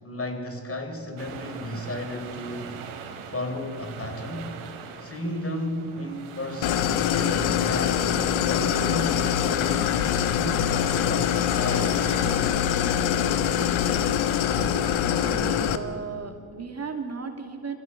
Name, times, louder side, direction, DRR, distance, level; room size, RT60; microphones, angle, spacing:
voice 1, 0.0-2.8 3.3-4.6 5.0-9.8 10.3-12.1, left 1 dB, 25° left, 6 dB, 4.1 m, -33 dB
sound 1, 1.2-15.5, right 6 dB, 80° right, 3.6 m, -42 dB
Idling, 6.6-15.8, left 9 dB, 70° left, 1.4 m, -24 dB
voice 2, 15.2-17.7, right 5 dB, 30° right, 5 dB, 2.4 m, -35 dB
23.0 x 16.0 x 8.7 m, 2.2 s
supercardioid pair, 70°, 49 cm